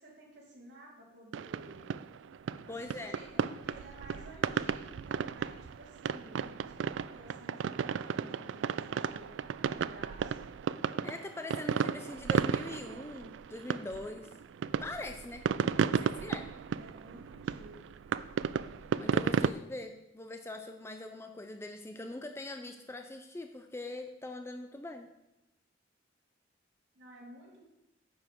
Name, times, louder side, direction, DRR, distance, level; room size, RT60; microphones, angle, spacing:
voice 1, 0.0-2.0 2.7-9.3 9.7-10.5 15.6-16.2 16.7-17.9 26.9-27.6, right 1 dB, 60° right, -6 dB, 3.9 m, -53 dB
sound 1, 1.3-19.5, right 7 dB, 80° right, 0.3 m, -33 dB
voice 2, 2.7-3.1 11.0-14.3 14.8-15.4 16.0-16.4 18.9-25.1, left 2 dB, 15° left, 5 dB, 0.4 m, -42 dB
9.4 x 7.2 x 4.6 m, 0.93 s
head